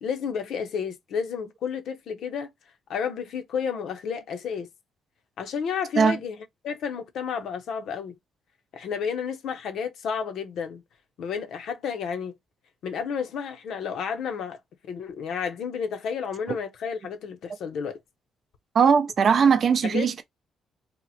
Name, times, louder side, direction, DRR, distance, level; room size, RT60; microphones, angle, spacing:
voice 1, 0.0-2.5 2.9-4.7 5.4-6.4 6.6-8.2 8.7-10.8 11.2-12.3 12.8-14.6 14.9-18.0 19.8-20.2, left 6 dB, 70° left, 0.7 m, -31 dB
voice 2, 18.7-20.2, right 6 dB, 55° right, 0.5 m, -19 dB
2.9 x 2.0 x 4.0 m
cardioid pair, 90°, 0 cm